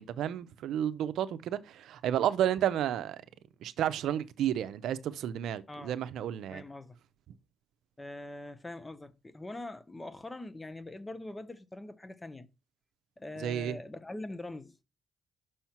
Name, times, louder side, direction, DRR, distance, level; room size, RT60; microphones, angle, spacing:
voice 1, 0.0-3.2 3.6-6.6 13.4-13.8, right 10 dB, 80° right, 0.6 m, -31 dB
voice 2, 6.5-7.0 8.0-12.5 13.2-14.8, left 2 dB, 15° left, 0.8 m, -43 dB
6.3 x 4.4 x 5.8 m
cardioid pair, 90°, 0 cm